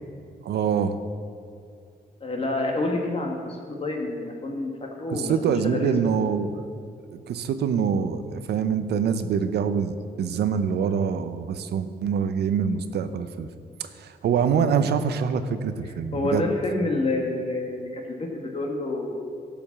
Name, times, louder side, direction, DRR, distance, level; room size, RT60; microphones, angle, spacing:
voice 1, 0.4-1.0 5.1-6.7 7.3-13.5 13.8-16.5, right 7 dB, 80° right, 11 dB, 0.7 m, -25 dB
voice 2, 2.2-4.7 5.0-6.2 16.1-19.1, left 2 dB, 35° left, 1 dB, 1.5 m, -28 dB
12.0 x 5.2 x 7.1 m, 2.4 s
cardioid pair, 95°, 17 cm